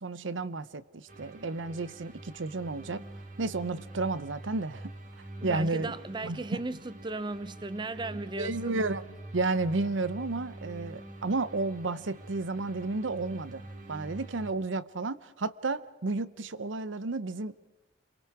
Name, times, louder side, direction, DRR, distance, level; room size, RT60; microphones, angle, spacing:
voice 1, 0.0-3.0 3.4-4.9 5.4-5.9 6.2-6.6 8.1-9.0 9.3-13.6 13.9-17.5, right 3 dB, 90° right, 0.8 m, -32 dB
sound 1, 1.1-14.5, right 2 dB, 45° right, 2.4 m, -46 dB
voice 2, 5.4-8.7, right 2 dB, 25° right, 0.6 m, -36 dB
28.0 x 22.5 x 4.8 m
head